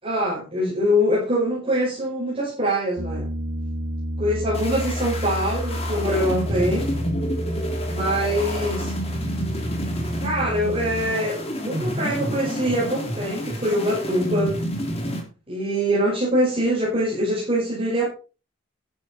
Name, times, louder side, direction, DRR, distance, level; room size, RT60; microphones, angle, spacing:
voice 1, 0.0-3.3 4.2-7.0 7.9-8.9 10.2-11.4 11.6-14.6 15.5-18.0, equal, 25° right, -6 dB, 5.5 m, -23 dB
Piano, 3.0-11.0, equal, 75° right, 2.2 m, -30 dB
sound 1, 4.5-15.2, equal, 30° left, 3.3 m, -29 dB
11.5 x 10.5 x 4.4 m, 0.35 s
head